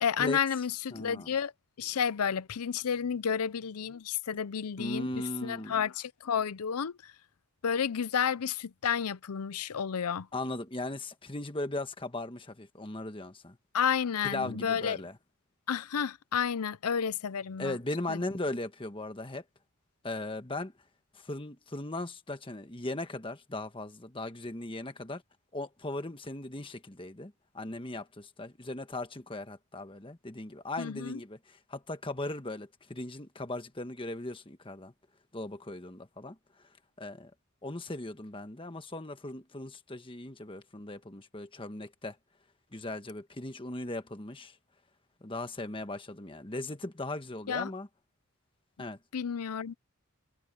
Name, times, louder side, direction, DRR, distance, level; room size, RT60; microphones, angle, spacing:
voice 1, 0.0-1.5 1.8-7.1 7.6-10.3 13.7-15.0 15.7-17.8 18.1-18.2 30.8-31.2 47.5-47.7 49.1-49.7, left 7 dB, 85° left, 0.6 m, -31 dB
voice 2, 0.9-1.3 4.8-5.8 10.3-13.6 14.2-15.1 17.6-19.4 20.0-20.7 21.1-25.2 25.5-34.9 35.3-36.3 37.0-37.3 37.6-42.2 42.7-44.6 45.2-47.9 48.8-49.0, left 2 dB, 25° left, 1.3 m, -38 dB
head